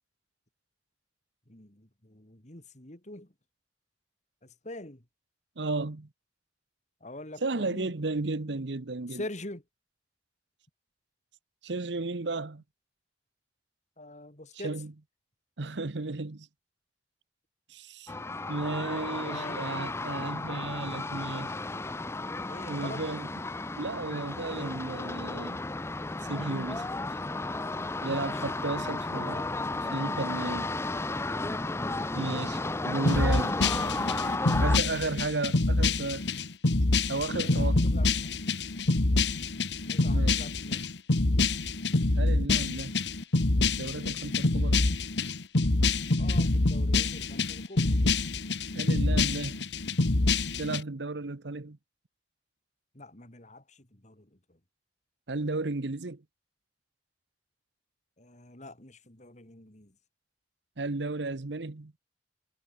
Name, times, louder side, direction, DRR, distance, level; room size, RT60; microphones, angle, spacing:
voice 1, 1.5-3.3 4.4-5.0 7.0-7.9 9.1-9.6 14.0-14.8 19.2-19.9 22.5-23.0 28.0-28.4 32.8-34.6 37.4-38.4 39.9-40.8 46.2-48.0 52.9-54.6 58.2-59.9, left 2 dB, 40° left, 3.4 m, -45 dB
voice 2, 5.6-6.1 7.4-9.2 11.6-12.6 14.6-14.9 15.6-16.5 17.7-18.1 18.5-21.5 22.7-23.3 23.8-25.6 26.3-26.9 28.0-29.5 29.8-30.7 32.1-33.5 34.6-36.3 37.1-37.8 40.1-40.4 42.2-43.0 43.6-44.8 48.7-49.6 50.6-51.8 55.3-56.2 60.8-61.9, right 3 dB, 80° right, 1.0 m, -34 dB
sound 1, 18.1-34.8, left 2 dB, 15° left, 0.6 m, -33 dB
sound 2, 33.1-50.8, left 3 dB, 75° left, 1.5 m, -26 dB
head